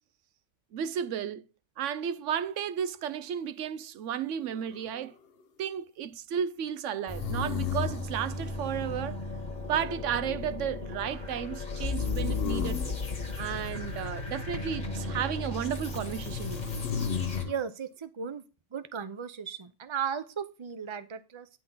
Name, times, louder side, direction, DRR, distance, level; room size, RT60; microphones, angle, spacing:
voice 1, 0.7-1.4 1.8-5.1 5.6-9.2 9.7-13.0 13.4-16.8, right 9 dB, 85° right, 1.0 m, -33 dB
sound 1, 4.4-5.1 7.2-8.1 11.9-13.0 16.3-17.5, left 8 dB, 60° left, 0.9 m, -33 dB
sound 2, 7.1-17.4, left 3 dB, 35° left, 1.6 m, -35 dB
voice 2, 17.4-18.4 18.7-21.5, right 7 dB, 30° right, 0.7 m, -36 dB
11.0 x 3.7 x 5.4 m
omnidirectional pair, 1.2 m